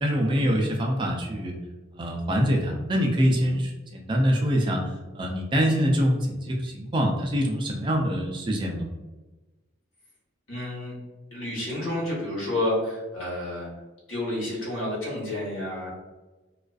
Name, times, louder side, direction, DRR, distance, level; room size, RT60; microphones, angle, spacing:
voice 1, 0.0-1.5 1.9-8.8, equal, 25° right, 0 dB, 0.3 m, -25 dB
voice 2, 10.5-10.9 11.3-13.7 14.1-15.9, left 1 dB, 90° left, -5 dB, 1.2 m, -30 dB
2.4 x 2.3 x 2.3 m, 1.2 s
head